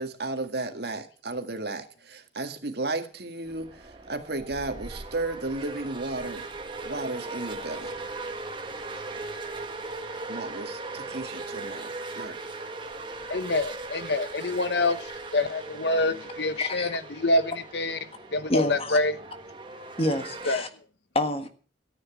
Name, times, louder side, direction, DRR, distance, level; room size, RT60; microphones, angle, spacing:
voice 1, 0.0-6.5 6.8-7.9 10.3-12.5, right 2 dB, 55° right, 1.9 m, -34 dB
sound 1, 3.4-20.6, right 3 dB, 25° right, 1.6 m, -39 dB
voice 2, 13.3-18.0 18.3-19.2 20.5-20.6, left 2 dB, 60° left, 1.0 m, -26 dB
voice 3, 16.6-17.0 18.5-19.0 20.0-20.7 21.1-21.5, left 1 dB, 30° left, 1.5 m, -27 dB
13.5 x 9.5 x 7.3 m
head